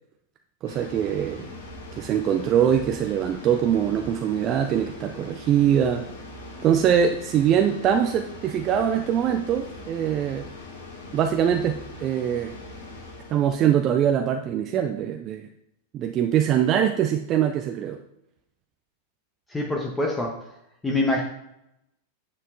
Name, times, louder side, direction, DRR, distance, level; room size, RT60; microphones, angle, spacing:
sound 1, 0.6-13.6, left 2 dB, 70° left, 2.4 m, -41 dB
voice 1, 0.6-1.5 1.9-6.0 6.6-10.4 11.1-12.5 13.3-15.5 15.9-18.0, right 9 dB, 35° right, 6 dB, 0.5 m, -23 dB
voice 2, 19.5-20.4 20.8-21.2, left 2 dB, 10° left, 0 dB, 1.1 m, -25 dB
9.8 x 7.4 x 2.7 m, 0.81 s
figure-of-eight pair, 90°, 0 cm